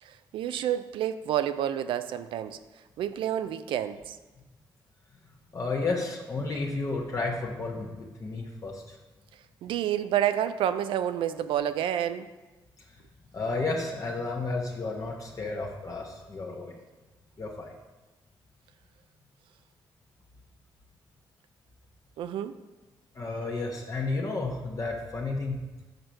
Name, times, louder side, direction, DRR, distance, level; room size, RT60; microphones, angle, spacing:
voice 1, 0.0-2.6 3.0-4.2 9.6-12.3 22.2-22.5, right 10 dB, 80° right, 11 dB, 0.4 m, -29 dB
voice 2, 5.5-9.0 13.3-16.8 17.4-17.7 23.1-25.6, left 3 dB, 40° left, -1 dB, 1.0 m, -32 dB
6.6 x 4.4 x 5.2 m, 1.2 s
cardioid pair, 65°, 9 cm